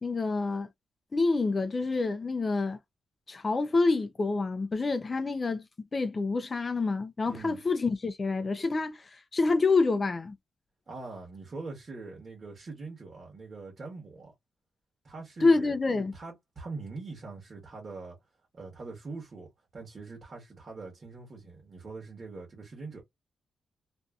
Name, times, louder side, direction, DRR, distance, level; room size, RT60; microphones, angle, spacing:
voice 1, 0.0-0.7 1.1-2.8 3.3-5.7 5.9-9.0 9.3-10.3 15.4-16.1, left 3 dB, 30° left, 0.5 m, -27 dB
voice 2, 7.2-7.6 10.9-14.3 15.0-15.7 16.1-18.2 18.5-19.5 19.7-23.0, right 3 dB, 40° right, 1.1 m, -43 dB
2.6 x 2.6 x 2.3 m
wide cardioid pair, 135°, 0 cm